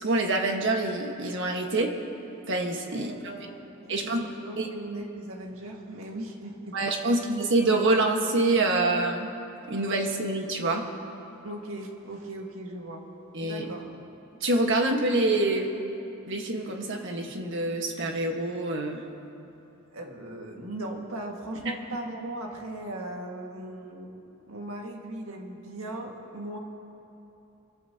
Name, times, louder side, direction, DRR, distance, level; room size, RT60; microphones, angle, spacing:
voice 1, 0.0-1.9 2.5-3.1 3.9-4.3 4.6-4.7 6.7-9.3 9.7-10.8 13.3-13.6 14.4-15.7 16.3-19.0, right 2 dB, 60° right, 2 dB, 1.5 m, -26 dB
voice 2, 2.9-7.2 11.4-13.1 13.4-14.0 19.9-24.1 24.4-26.6, right 1 dB, 85° right, 1 dB, 1.9 m, -38 dB
26.5 x 14.5 x 2.9 m, 2.9 s
head